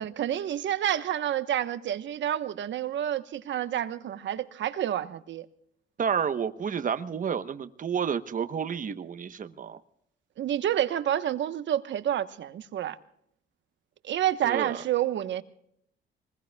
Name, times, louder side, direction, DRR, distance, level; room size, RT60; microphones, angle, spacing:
voice 1, 0.0-5.4 10.4-13.0 14.0-15.4, right 11 dB, 70° right, 1.1 m, -29 dB
voice 2, 6.0-9.8 14.4-14.8, right 7 dB, 40° right, 1.0 m, -30 dB
25.0 x 20.5 x 2.3 m
cardioid pair, 90°, 20 cm